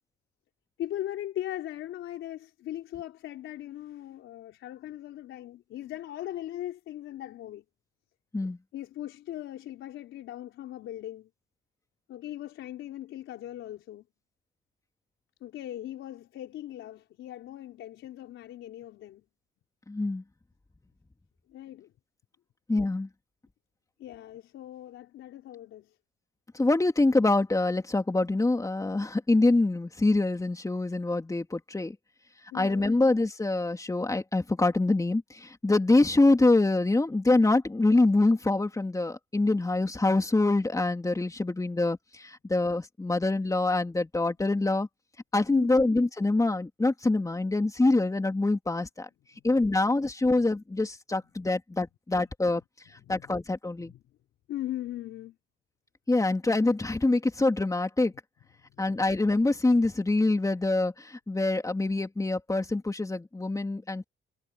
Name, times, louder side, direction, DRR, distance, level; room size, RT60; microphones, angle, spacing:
voice 1, 0.8-7.6 8.7-11.3 12.1-14.1 15.4-19.2 21.5-21.9 24.0-26.0 32.5-33.0 45.5-45.9 49.4-49.5 51.2-51.3 52.2-52.3 53.0-53.3 53.8-54.0 54.5-55.4 58.6-59.0, left 13 dB, 80° left, 4.1 m, -39 dB
voice 2, 19.9-20.2 22.7-23.1 26.5-32.0 32.5-44.9 45.3-49.1 49.4-52.6 53.1-53.9 56.1-58.1 58.8-64.0, left 2 dB, 15° left, 3.3 m, -25 dB
cardioid pair, 90°, 20 cm